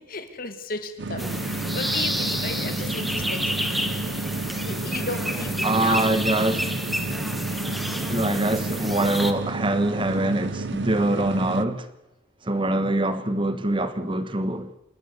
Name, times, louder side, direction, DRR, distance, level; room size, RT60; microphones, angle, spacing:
voice 1, 0.0-3.7 4.7-6.2, left 3 dB, 50° left, 2.1 m, -34 dB
sound 1, 1.0-11.7, right 3 dB, 60° right, 0.7 m, -31 dB
sound 2, 1.2-9.3, equal, ahead, 1.1 m, -29 dB
voice 2, 5.6-6.7 8.1-11.9 12.4-14.7, right 1 dB, 25° right, 1.2 m, -24 dB
28.0 x 12.0 x 8.2 m
head